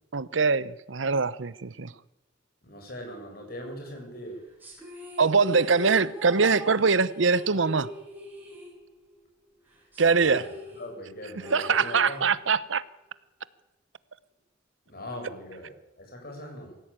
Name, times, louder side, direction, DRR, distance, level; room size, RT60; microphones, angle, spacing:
voice 1, 0.1-1.9 5.2-7.9 10.0-10.4 11.5-12.8, right 4 dB, 75° right, 0.9 m, -23 dB
voice 2, 2.6-4.5 10.0-12.2 14.9-16.8, left 1 dB, 50° left, 7.5 m, -41 dB
sound 1, 4.6-9.3 9.5-9.6 9.9-12.6, left 2 dB, 10° right, 6.7 m, -41 dB
23.5 x 16.0 x 9.0 m
head